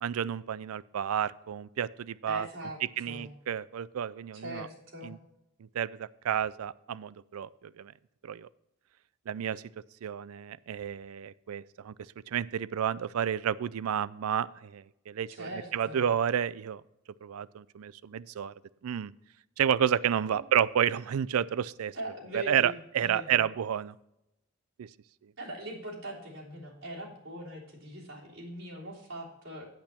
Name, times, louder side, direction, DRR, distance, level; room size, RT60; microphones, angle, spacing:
voice 1, 0.0-2.5 3.0-4.7 5.0-5.2 5.6-7.9 8.2-8.5 9.3-9.6 10.0-11.9 12.3-16.8 17.2-18.5 18.8-19.1 19.6-22.0 22.3-23.9 24.8-24.9 25.2-25.3, right 9 dB, 85° right, 20 dB, 0.4 m, -31 dB
voice 2, 2.3-2.8 3.0-3.3 4.4-5.1 15.3-16.0 20.3-20.4 21.9-23.4 25.4-29.7, right 1 dB, 65° right, -4 dB, 3.4 m, -41 dB
8.7 x 8.3 x 4.3 m, 0.85 s
head